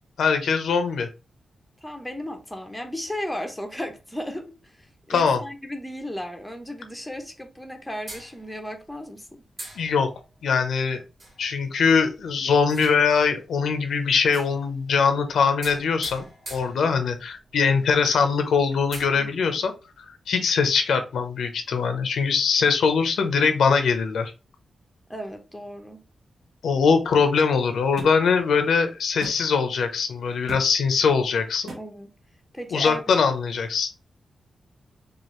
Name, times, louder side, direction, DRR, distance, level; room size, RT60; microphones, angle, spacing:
voice 1, 0.2-1.1 5.1-5.4 9.8-10.1 10.4-11.0 11.4-16.3 16.5-19.7 20.0-24.3 26.6-31.7 32.7-33.9, left 5 dB, 90° left, 0.7 m, -22 dB
voice 2, 1.8-9.4 19.1-19.7 25.1-26.0 31.8-32.1 32.5-33.3, left 1 dB, 5° left, 0.7 m, -35 dB
sound 1, 8.1-8.8 9.6-10.4 11.2-11.5 12.6-13.3 14.2-14.9 15.6-17.3 17.8-17.9 18.2-18.3 18.8-19.0, right 2 dB, 30° right, 1.9 m, -42 dB
sound 2, 28.0-28.1 29.2-29.4 30.5-30.7 31.7-31.8, right 2 dB, 55° right, 1.1 m, -36 dB
4.7 x 2.4 x 3.1 m
wide cardioid pair, 150°, 0 cm